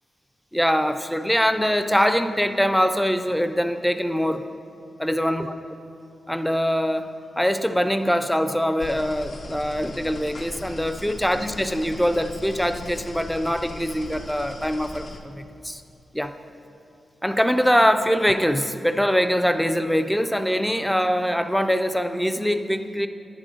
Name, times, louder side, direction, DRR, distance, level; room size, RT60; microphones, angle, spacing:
voice 1, 0.5-4.4 5.0-5.5 6.3-15.8 16.1-16.3 17.2-23.1, equal, 5° left, 9 dB, 0.4 m, -23 dB
sound 1, 8.8-15.2, left 1 dB, 60° left, 0.7 m, -39 dB
9.0 x 3.7 x 6.5 m, 2.7 s
cardioid pair, 85°, 0 cm